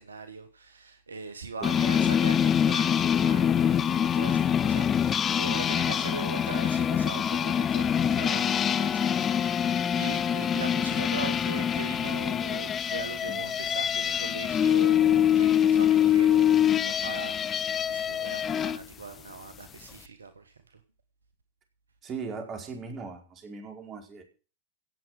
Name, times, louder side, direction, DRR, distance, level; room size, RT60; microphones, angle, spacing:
voice 1, 0.0-20.8, right 4 dB, 75° right, 1.4 m, -41 dB
sound 1, 1.6-18.8, left 9 dB, 25° left, 0.6 m, -25 dB
voice 2, 1.6-2.1 22.0-24.2, right 5 dB, 30° right, 4.8 m, -39 dB
17.0 x 7.8 x 6.6 m
figure-of-eight pair, 90°, 0 cm